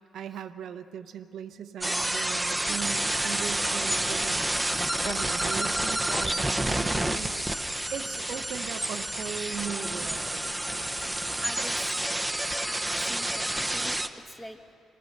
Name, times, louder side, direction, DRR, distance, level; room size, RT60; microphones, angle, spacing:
voice 1, 0.1-4.4 5.0-7.4 7.9-10.5, right 8 dB, 70° right, 9 dB, 0.8 m, -38 dB
sound 1, 1.8-14.1, right 1 dB, 10° right, 0.9 m, -29 dB
sound 2, 3.6-11.8, left 6 dB, 75° left, 0.9 m, -49 dB
voice 2, 11.4-11.9 12.6-14.6, left 1 dB, 10° left, 4 dB, 1.5 m, -43 dB
26.0 x 17.5 x 6.6 m, 2.8 s
cardioid pair, 90°, 0 cm